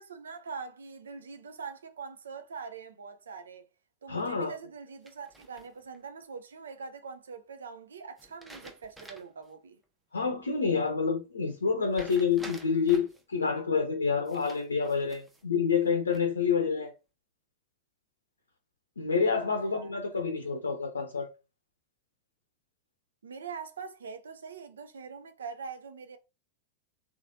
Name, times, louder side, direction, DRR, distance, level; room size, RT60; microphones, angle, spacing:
voice 1, 0.0-3.7 4.0-9.8 19.4-19.9 23.2-26.2, right 5 dB, 70° right, 0.5 m, -43 dB
voice 2, 4.1-4.5 10.1-16.9 19.0-21.3, left 5 dB, 75° left, 0.6 m, -28 dB
sound 1, 5.1-6.0 8.2-9.4 9.8-9.9 11.9-13.2 14.3-15.4 15.9-16.5, right 2 dB, 10° right, 0.7 m, -50 dB
3.5 x 3.2 x 2.6 m
figure-of-eight pair, 90°, 0 cm